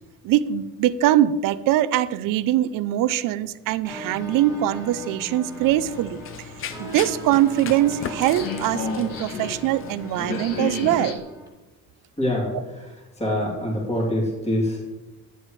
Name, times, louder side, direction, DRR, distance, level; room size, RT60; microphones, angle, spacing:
voice 1, 0.2-6.5 6.8-11.2, right 12 dB, 75° right, 16 dB, 0.5 m, -22 dB
sound 1, 3.8-11.5, right 1 dB, 10° right, 2.1 m, -40 dB
sound 2, 4.1-11.1, left 3 dB, 80° left, 1.6 m, -34 dB
Run, 5.6-11.2, left 7 dB, 40° left, 0.6 m, -38 dB
voice 2, 12.2-12.9 13.2-14.9, left 1 dB, 20° left, -5 dB, 3.0 m, -25 dB
11.5 x 9.4 x 3.2 m, 1.1 s
cardioid pair, 135°, 33 cm